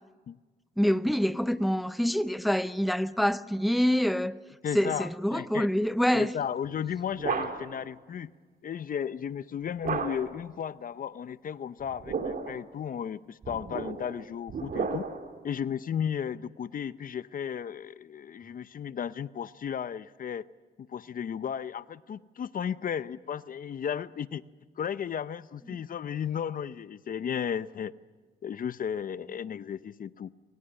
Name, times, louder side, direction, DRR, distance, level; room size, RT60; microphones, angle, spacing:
voice 1, 0.8-4.4 4.7-6.3, equal, ahead, 0.7 m, -26 dB
voice 2, 4.6-5.7 6.1-8.3 8.6-15.0 15.4-20.4 20.9-24.4 24.8-27.9 28.4-30.3, left 8 dB, 55° left, 0.7 m, -34 dB
sound 1, 6.7-7.9 9.8-10.5 11.8-12.6 13.4-15.4, right 5 dB, 60° right, 2.4 m, -34 dB
23.0 x 18.0 x 9.9 m
cardioid pair, 75°, 17 cm